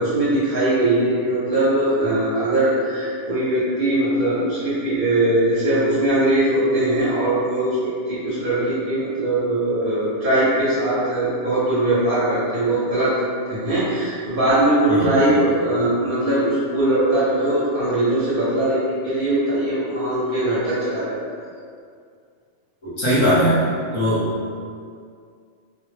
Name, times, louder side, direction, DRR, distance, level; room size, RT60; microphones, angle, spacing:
voice 1, 0.0-13.1 13.5-21.2, right 1 dB, 55° right, -9 dB, 0.7 m, -20 dB
voice 2, 22.8-23.5 23.9-24.5, equal, 35° left, -10 dB, 0.5 m, -20 dB
2.1 x 2.0 x 3.1 m, 2.2 s
omnidirectional pair, 1.3 m